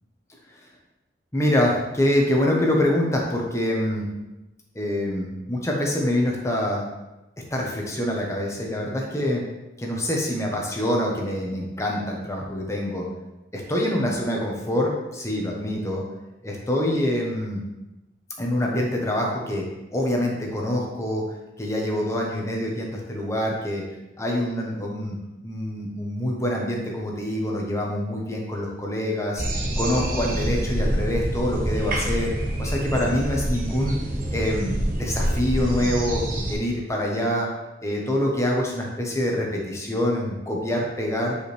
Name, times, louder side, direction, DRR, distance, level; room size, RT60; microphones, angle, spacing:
voice 1, 1.3-4.1 4.7-6.8 7.5-9.4 9.8-13.0 13.5-16.0 16.4-17.6 18.4-19.6 19.9-21.2 21.6-23.8 24.2-25.2 25.4-29.4 29.8-32.3 32.6-34.0 34.3-36.2 36.5-37.5 37.8-41.4, left 1 dB, 15° left, -1 dB, 1.1 m, -25 dB
sound 1, 29.4-36.5, right 1 dB, 45° right, 1.2 m, -26 dB
9.3 x 5.0 x 3.4 m, 1.0 s
head